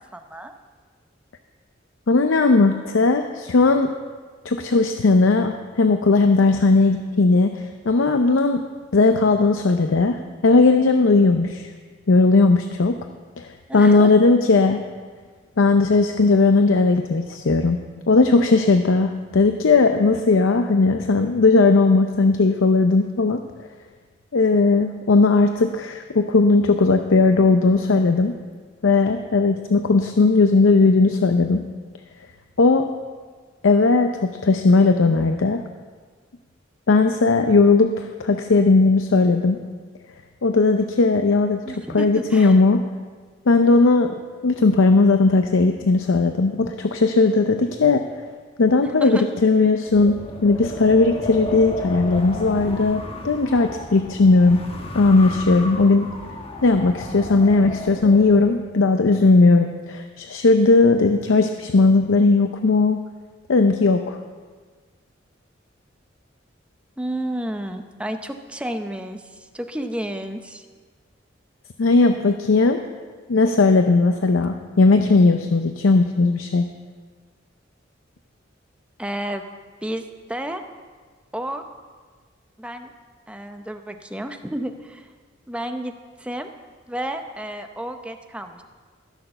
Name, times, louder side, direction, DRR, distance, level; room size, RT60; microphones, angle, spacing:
voice 1, 0.1-0.5 13.7-14.1 41.6-42.6 49.0-49.2 67.0-70.6 79.0-79.4 79.8-80.6 81.3-81.6 82.6-82.9 83.3-85.1 85.5-85.9 86.2-86.5 86.9-88.6, right 1 dB, 5° right, 6 dB, 0.7 m, -31 dB
voice 2, 2.1-3.9 4.4-8.6 8.9-11.7 12.1-13.0 13.4-14.8 15.6-17.8 18.1-23.4 24.3-28.3 28.8-31.6 32.6-32.9 33.6-35.6 36.9-39.6 40.4-41.6 41.9-42.8 43.5-44.2 44.4-48.0 48.6-54.6 54.9-56.1 56.6-63.0 63.5-64.2 71.8-72.8 73.3-76.7, left 3 dB, 85° left, 7 dB, 0.6 m, -17 dB
Wind, 49.9-58.6, left 1 dB, 30° left, 1.1 m, -34 dB
15.0 x 6.6 x 6.8 m, 1.5 s
head